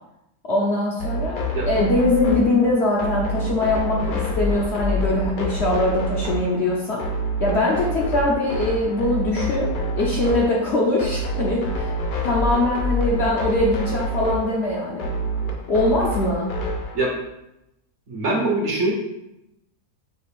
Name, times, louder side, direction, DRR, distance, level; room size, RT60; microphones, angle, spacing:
voice 1, 0.4-7.0 7.4-11.9 12.2-15.1 15.7-16.5, left 2 dB, 55° left, -3 dB, 0.8 m, -22 dB
sound 1, 1.0-17.0, equal, 85° left, 0.4 m, -27 dB
voice 2, 18.1-18.9, right 2 dB, 55° right, -1 dB, 0.9 m, -22 dB
5.6 x 2.5 x 3.5 m, 0.86 s
omnidirectional pair, 1.7 m